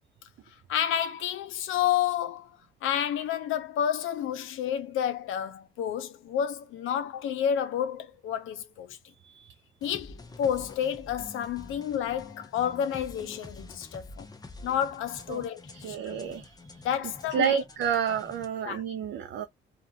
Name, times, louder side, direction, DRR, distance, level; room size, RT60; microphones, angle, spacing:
voice 1, 0.7-9.0 9.8-14.3 14.6-16.1 16.8-17.6 18.6-18.8, left 9 dB, 85° left, 0.6 m, -30 dB
voice 2, 9.2-9.5 15.3-15.4 15.8-16.6 17.3-19.4, right 8 dB, 65° right, 0.5 m, -29 dB
sound 1, 9.8-18.5, left 2 dB, 20° left, 0.7 m, -47 dB
2.5 x 2.3 x 2.7 m
cardioid pair, 90°, 20 cm